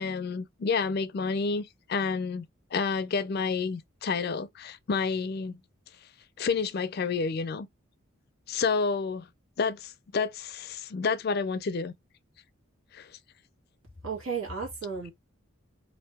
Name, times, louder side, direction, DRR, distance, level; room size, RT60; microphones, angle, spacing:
voice 1, 0.0-2.5 2.7-5.6 6.4-7.7 8.5-9.3 9.6-11.9 12.9-13.1, left 5 dB, 45° left, 0.4 m, -29 dB
voice 2, 14.0-15.1, right 5 dB, 85° right, 1.5 m, -33 dB
2.7 x 2.5 x 3.3 m
head